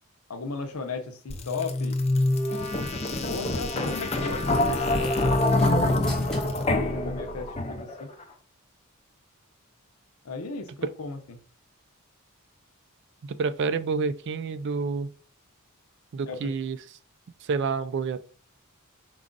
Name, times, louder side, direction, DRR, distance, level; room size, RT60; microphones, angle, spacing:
voice 1, 0.3-2.0 3.3-8.1 10.2-11.4 16.2-16.5, left 4 dB, 75° left, 0.7 m, -36 dB
sound 1, 1.3-8.0, left 2 dB, 30° left, 0.5 m, -25 dB
sound 2, 5.0-7.7, equal, 5° left, 0.8 m, -41 dB
voice 2, 13.2-15.1 16.1-16.8 17.4-18.2, right 4 dB, 55° right, 0.3 m, -28 dB
4.7 x 2.4 x 3.8 m
head